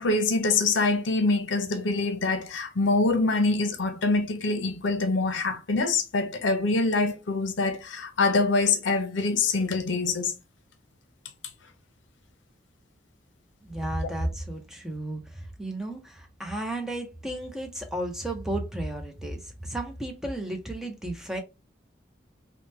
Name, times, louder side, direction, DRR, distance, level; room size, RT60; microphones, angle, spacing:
voice 1, 0.0-10.3, left 3 dB, 80° left, 0.6 m, -25 dB
voice 2, 13.6-21.4, right 1 dB, 5° right, 0.5 m, -33 dB
2.9 x 2.1 x 3.2 m
head